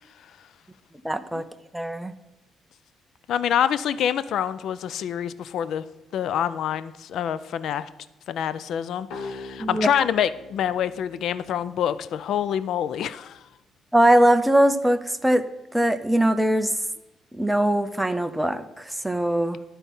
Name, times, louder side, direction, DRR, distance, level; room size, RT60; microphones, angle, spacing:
voice 1, 1.0-1.4 1.7-2.1 9.6-9.9 13.9-15.4 15.7-16.8 17.3-19.6, right 1 dB, 5° right, 9 dB, 0.5 m, -21 dB
voice 2, 3.3-5.8 6.1-7.9 8.3-13.4, left 9 dB, 65° left, 16 dB, 0.3 m, -26 dB
sound 1, 9.1-12.6, left 3 dB, 85° left, 1.3 m, -42 dB
12.0 x 4.1 x 5.4 m, 0.98 s
cardioid pair, 130°, 0 cm